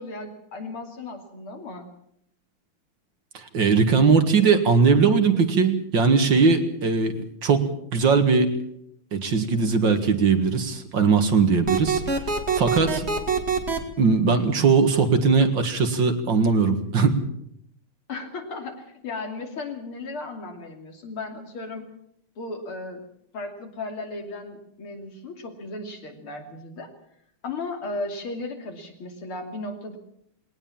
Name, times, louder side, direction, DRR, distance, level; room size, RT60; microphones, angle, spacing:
voice 1, 0.0-1.9 18.1-21.9 22.4-23.0 23.3-26.9 27.4-30.0, left 3 dB, 75° left, 4 dB, 3.7 m, -35 dB
voice 2, 3.3-8.5 9.1-12.0 12.5-13.1 14.0-17.2, right 5 dB, 60° right, 6 dB, 2.5 m, -20 dB
sound 1, 11.7-13.8, right 5 dB, 30° right, 2.3 m, -24 dB
20.5 x 18.5 x 7.3 m, 0.73 s
omnidirectional pair, 2.4 m